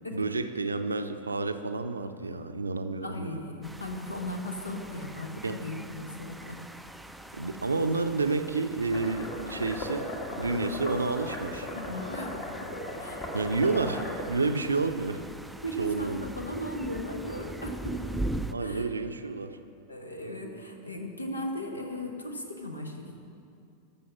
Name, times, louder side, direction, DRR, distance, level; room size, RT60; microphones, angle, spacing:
voice 1, 0.1-3.4 5.4-5.6 7.3-10.1 10.4-11.7 13.3-15.2 15.8-16.2 18.5-19.6, right 3 dB, 75° right, 9 dB, 0.5 m, -30 dB
voice 2, 3.0-6.6 11.7-12.7 13.0-13.3 15.6-18.3 18.6-18.9 19.9-23.2, left 1 dB, 80° left, 3 dB, 1.1 m, -37 dB
sound 1, 3.6-18.5, right 1 dB, ahead, 0.4 m, -41 dB
sound 2, 8.9-14.5, left 1 dB, 40° left, 1.7 m, -37 dB
12.0 x 6.9 x 5.8 m, 2.6 s
figure-of-eight pair, 90°, 0 cm